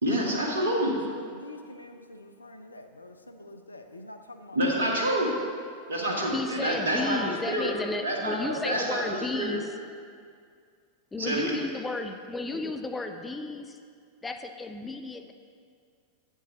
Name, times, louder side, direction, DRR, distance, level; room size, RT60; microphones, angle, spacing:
voice 1, 0.0-1.0 4.5-5.4 5.9-7.2 7.5-7.7 8.0-9.0 9.3-9.6 11.2-11.6, right 1 dB, 70° right, -1 dB, 1.6 m, -27 dB
voice 2, 1.1-4.9 5.9-6.0, left 2 dB, 80° left, 7 dB, 0.5 m, -46 dB
voice 3, 6.3-9.7 11.1-13.8 14.2-15.3, left 3 dB, 10° left, 6 dB, 0.5 m, -33 dB
8.7 x 7.2 x 4.0 m, 2.2 s
figure-of-eight pair, 90°, 0 cm